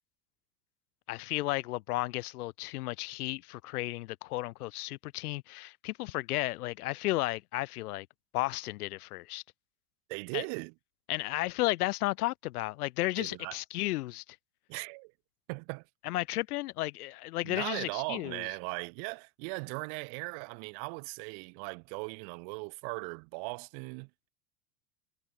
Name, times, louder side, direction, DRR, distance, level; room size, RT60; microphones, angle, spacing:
voice 1, 1.1-8.1 8.3-9.4 10.3-10.4 11.1-14.2 16.0-18.5, left 18 dB, 80° left, 1.4 m, -33 dB
voice 2, 10.1-10.7 13.2-13.6 14.7-15.1 15.5-15.8 17.4-24.3, right 40 dB or more, 55° right, 2.8 m, -38 dB
supercardioid pair, 135°, 45 cm